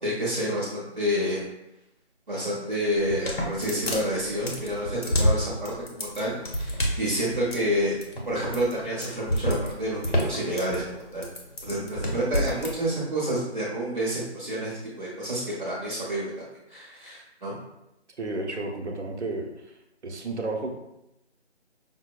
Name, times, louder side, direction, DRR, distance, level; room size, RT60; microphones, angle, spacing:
voice 1, 0.0-1.4 2.3-7.9 8.3-11.3 11.6-16.3 16.7-17.6, equal, 40° right, -6 dB, 0.8 m, -29 dB
sound 1, 3.0-12.7, equal, 60° left, 1.0 m, -28 dB
voice 2, 18.2-19.5 20.0-20.8, right 2 dB, 75° right, 2 dB, 0.8 m, -32 dB
5.6 x 2.0 x 2.2 m, 0.88 s
figure-of-eight pair, 175°, 35 cm